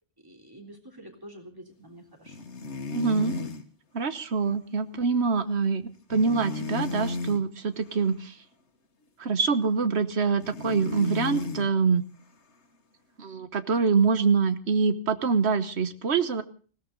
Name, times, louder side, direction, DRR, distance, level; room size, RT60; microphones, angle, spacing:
voice 1, 0.2-2.4, right 1 dB, 20° right, 2 dB, 3.4 m, -47 dB
sound 1, 2.3-3.7 6.1-7.4 10.4-11.7, left 4 dB, 75° left, 1.8 m, -33 dB
voice 2, 2.9-3.3 3.9-5.8 6.1-8.3 9.2-12.0 13.2-16.4, right 5 dB, 65° right, 12 dB, 1.4 m, -25 dB
20.0 x 17.0 x 3.9 m, 0.40 s
omnidirectional pair, 1.2 m